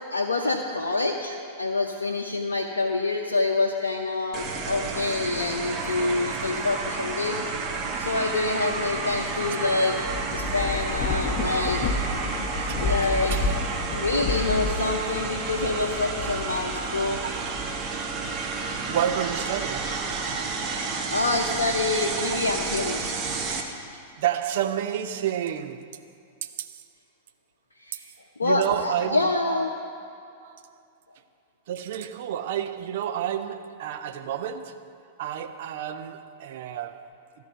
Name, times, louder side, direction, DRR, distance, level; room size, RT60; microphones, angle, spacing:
voice 1, 0.1-7.4 8.0-10.0 10.3-11.8 12.8-13.3 13.9-17.2 21.1-23.2 27.9-28.0 28.4-29.7, left 3 dB, 75° left, 0.6 m, -26 dB
sound 1, 4.3-23.6, right 4 dB, 30° right, 1.1 m, -31 dB
Thunder / Rain, 9.9-18.6 19.1-20.5, left 3 dB, 30° left, 0.9 m, -31 dB
voice 2, 12.5-12.9 13.3-13.6 15.7-15.8 17.2-17.6 18.9-20.0 22.2-22.4 24.2-26.1 26.4-26.8 28.4-29.6 30.4-30.8 31.7-37.1, right 10 dB, 55° right, 0.5 m, -31 dB
13.0 x 4.8 x 7.9 m
figure-of-eight pair, 95°, 0 cm